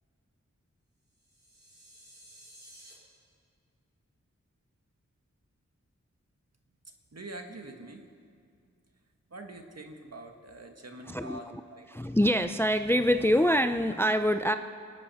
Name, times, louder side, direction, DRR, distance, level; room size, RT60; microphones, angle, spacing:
sound 1, 1.1-2.9, right 1 dB, 35° right, 4.0 m, -54 dB
voice 1, 7.1-8.1 9.3-11.9, right 2 dB, 55° right, 4 dB, 1.6 m, -45 dB
voice 2, 11.1-11.4 11.9-14.6, equal, 10° left, 9 dB, 0.4 m, -25 dB
25.0 x 8.9 x 5.7 m, 2.2 s
wide cardioid pair, 75°, 30 cm